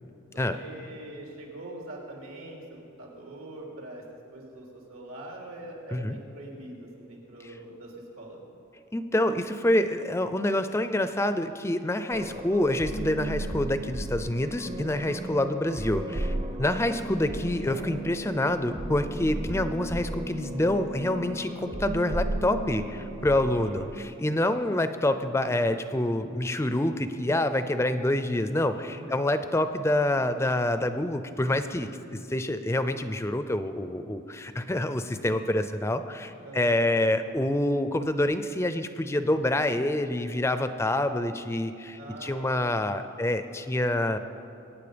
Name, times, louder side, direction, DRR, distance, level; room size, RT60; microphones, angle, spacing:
voice 1, 0.5-4.0 4.3-8.4 15.3-15.7 23.5-23.7 28.9-29.1 36.4-36.9 42.0-43.4 43.8-44.2, right 1 dB, 85° right, -2 dB, 3.3 m, -43 dB
voice 2, 8.9-44.2, left 1 dB, 15° left, 10 dB, 0.4 m, -27 dB
sound 1, 12.1-24.0, right 1 dB, 30° right, 0.6 m, -35 dB
23.0 x 9.0 x 5.1 m, 2.7 s
head